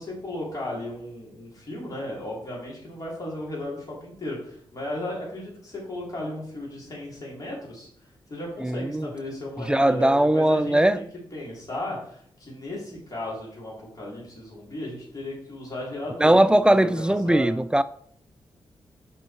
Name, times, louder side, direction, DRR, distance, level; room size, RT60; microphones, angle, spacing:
voice 1, 0.0-7.9 8.3-16.4 16.8-17.5, left 1 dB, 40° left, 3.7 m, -35 dB
voice 2, 8.6-9.1 9.7-11.0 16.2-17.8, right 1 dB, 10° right, 0.3 m, -20 dB
7.3 x 5.4 x 4.5 m
wide cardioid pair, 105°, 9 cm